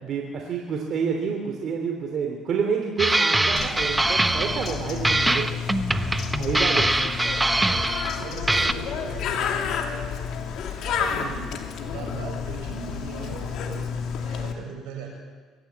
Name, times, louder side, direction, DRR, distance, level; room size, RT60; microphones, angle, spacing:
voice 1, 0.0-5.6 6.4-6.9, right 6 dB, 55° right, 2 dB, 3.0 m, -28 dB
sound 1, 3.0-4.8 5.0-8.2 8.5-8.7, right 2 dB, 10° right, 1.1 m, -23 dB
Bird, 3.5-14.5, left 7 dB, 65° left, 2.7 m, -31 dB
voice 2, 7.5-10.2 10.8-15.2, right 5 dB, 85° right, 1 dB, 7.1 m, -39 dB
23.0 x 14.5 x 8.6 m, 1.4 s
cardioid pair, 95°, 0 cm